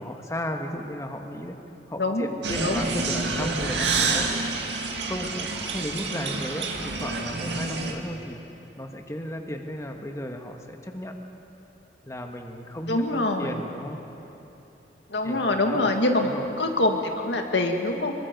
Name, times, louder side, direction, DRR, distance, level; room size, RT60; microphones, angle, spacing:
voice 1, 0.0-1.6 1.9-4.3 5.1-8.4 8.8-11.2 12.0-13.1 13.4-14.0 15.2-15.9 16.2-16.5, equal, 15° left, 3 dB, 1.4 m, -34 dB
sound 1, 2.4-7.9, right 4 dB, 75° right, 2.0 m, -28 dB
voice 2, 12.9-13.6 15.1-16.3 16.6-18.1, left 2 dB, 80° left, 3 dB, 1.9 m, -24 dB
25.5 x 22.5 x 5.3 m, 2.9 s
head